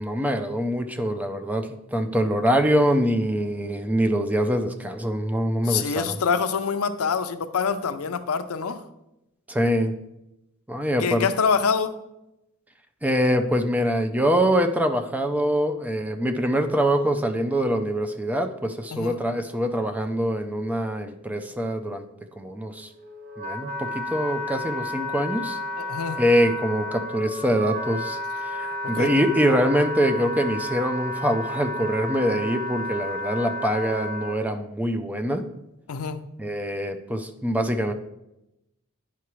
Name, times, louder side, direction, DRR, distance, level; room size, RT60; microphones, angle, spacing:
voice 1, 0.0-6.1 9.5-9.9 10.7-11.3 13.0-22.1 22.4-22.9 23.4-25.6 26.2-35.5 36.4-37.9, equal, 5° right, 8 dB, 0.4 m, -24 dB
voice 2, 5.7-8.8 11.0-12.0 18.9-19.2 25.8-26.2 28.8-29.1 35.9-36.2, left 5 dB, 80° left, 11 dB, 0.5 m, -25 dB
Wind instrument woodwind instrument, 22.8-34.4, left 1 dB, 40° right, 0.9 m, -32 dB
9.7 x 5.7 x 3.1 m, 0.91 s
head